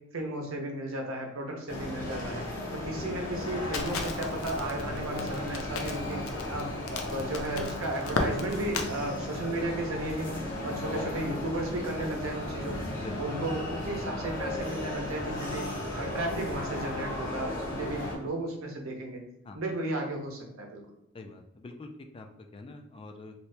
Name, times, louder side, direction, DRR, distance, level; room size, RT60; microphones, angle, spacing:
voice 1, 0.1-2.4 2.7-6.2 6.5-12.8 13.2-15.6 15.9-19.2 19.5-20.8, right 1 dB, 75° right, 2 dB, 0.7 m, -34 dB
sound 1, 1.7-18.2, left 1 dB, 60° left, 1.5 m, -35 dB
Crackle, 3.7-8.9, left 3 dB, 85° left, 0.5 m, -35 dB
voice 2, 21.1-23.3, left 3 dB, 25° left, 5 dB, 0.3 m, -44 dB
2.8 x 2.7 x 3.2 m, 0.85 s
head